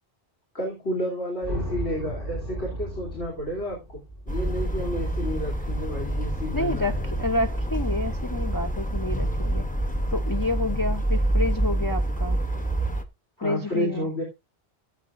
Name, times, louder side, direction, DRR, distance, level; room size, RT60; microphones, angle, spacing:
voice 1, 0.5-4.0 4.2-7.1 13.4-14.2, equal, 75° left, 3.2 m, -31 dB
sound 1, 1.4-5.8, right 1 dB, 55° left, 4.5 m, -35 dB
sound 2, 4.3-13.0, right 1 dB, 10° left, 0.8 m, -27 dB
voice 2, 6.5-9.6 10.1-12.4 13.4-14.1, left 2 dB, 25° left, 0.4 m, -29 dB
16.0 x 8.1 x 2.5 m
omnidirectional pair, 1.1 m